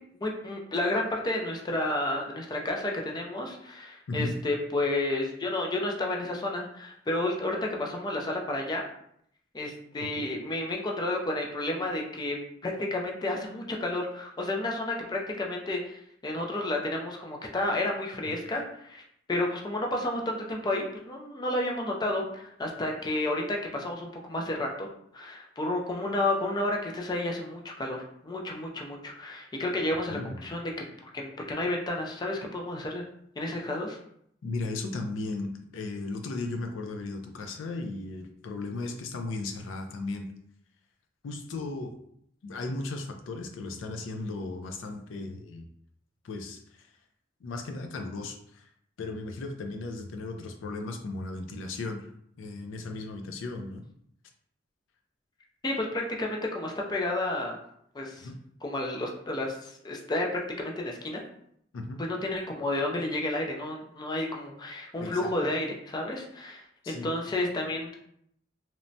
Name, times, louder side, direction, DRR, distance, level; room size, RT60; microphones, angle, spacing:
voice 1, 0.1-8.8 9.5-12.4 12.6-19.0 19.3-24.9 25.1-30.7 31.0-33.0 33.4-34.0 55.6-57.6 57.9-58.3 58.6-61.2 62.0-67.9, left 1 dB, 20° left, 0 dB, 0.4 m, -31 dB
voice 2, 34.4-40.3 41.2-41.9 42.4-45.7 46.2-46.9 47.4-48.7 49.0-52.1 52.4-53.9 58.2-58.4 61.7-62.0 65.0-65.2 66.8-67.1, left 2 dB, 85° left, 4 dB, 0.4 m, -36 dB
2.9 x 2.1 x 2.6 m, 0.70 s
head